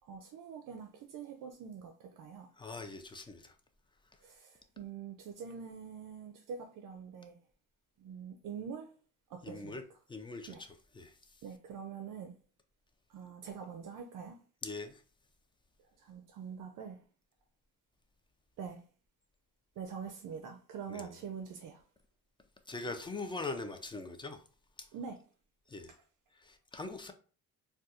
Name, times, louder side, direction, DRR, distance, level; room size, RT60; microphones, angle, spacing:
voice 1, 0.0-2.5 4.2-7.4 8.0-8.9 9.3-9.8 10.5-10.6 11.4-12.4 13.1-14.4 16.0-17.0 18.6-18.8 19.8-21.8 24.9-25.2, right 6 dB, 65° right, 0.5 m, -45 dB
voice 2, 2.6-3.6 9.4-9.8 10.1-11.4 14.6-15.0 20.9-21.2 22.7-24.4 24.8-24.9 25.7-25.9 26.3-27.1, left 3 dB, 15° left, 0.4 m, -42 dB
4.1 x 2.3 x 2.4 m
cardioid pair, 115°, 35 cm